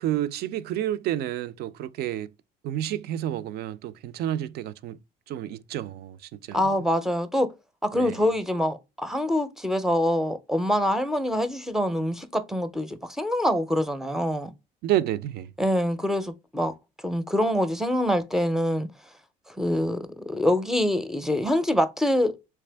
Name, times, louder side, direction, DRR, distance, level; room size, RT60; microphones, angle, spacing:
voice 1, 0.0-2.3 2.6-5.0 5.3-6.6 7.9-8.2 14.8-15.5, right 12 dB, 70° right, 0.4 m, -30 dB
voice 2, 6.5-7.5 7.8-14.5 15.6-16.7 17.0-18.9 19.5-22.5, left 1 dB, 5° right, 0.5 m, -25 dB
3.4 x 3.2 x 3.3 m
cardioid pair, 110°, 17 cm